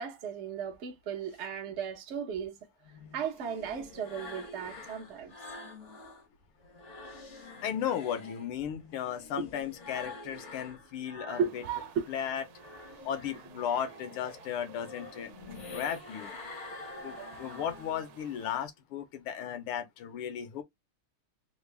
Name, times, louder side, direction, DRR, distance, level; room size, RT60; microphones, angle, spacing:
voice 1, 0.0-2.5 3.1-5.3 9.4-9.5 11.4-11.5 11.9-12.1, right 7 dB, 55° right, 0.7 m, -35 dB
sound 1, 2.8-6.2 6.6-12.0 12.4-18.2, left 2 dB, 50° left, 0.8 m, -47 dB
voice 2, 7.6-11.6 12.1-12.4 13.0-16.3 17.0-20.6, left 9 dB, 80° left, 1.7 m, -35 dB
sound 2, 11.3-18.7, right 12 dB, 75° right, 1.4 m, -48 dB
3.9 x 2.1 x 3.2 m
omnidirectional pair, 2.4 m